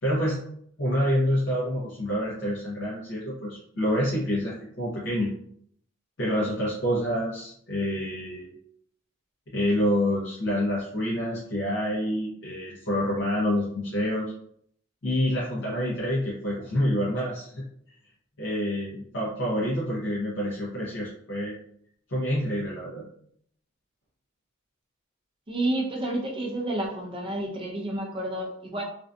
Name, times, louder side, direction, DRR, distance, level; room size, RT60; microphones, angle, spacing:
voice 1, 0.0-0.4 0.8-5.3 6.2-8.5 9.5-14.2 15.0-17.6 18.4-21.5 22.1-23.0, equal, 55° left, -6 dB, 0.6 m, -27 dB
voice 2, 25.5-28.8, right 1 dB, 25° right, 0 dB, 0.4 m, -30 dB
2.5 x 2.2 x 2.5 m, 0.67 s
head